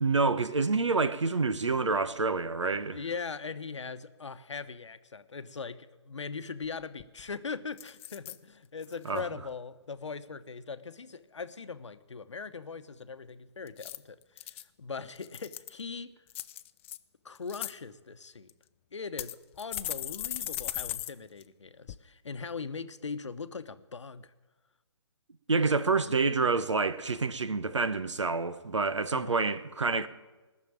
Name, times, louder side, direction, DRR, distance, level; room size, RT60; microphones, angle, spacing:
voice 1, 0.0-3.0 9.0-9.2 25.5-30.1, right 4 dB, 85° right, 1.0 m, -28 dB
voice 2, 2.7-16.1 17.2-18.5 18.9-24.3 29.1-29.4, left 5 dB, 80° left, 0.9 m, -40 dB
sound 1, 6.6-6.7 7.0-7.3 7.8-8.4 8.8-9.2 13.7-14.6 15.2-15.8 16.3-17.0 17.4-17.7 18.5-18.6 19.2-21.1 21.4-21.5 21.9-22.0, left 13 dB, 25° left, 0.4 m, -38 dB
19.0 x 6.7 x 8.7 m
figure-of-eight pair, 140°, 15 cm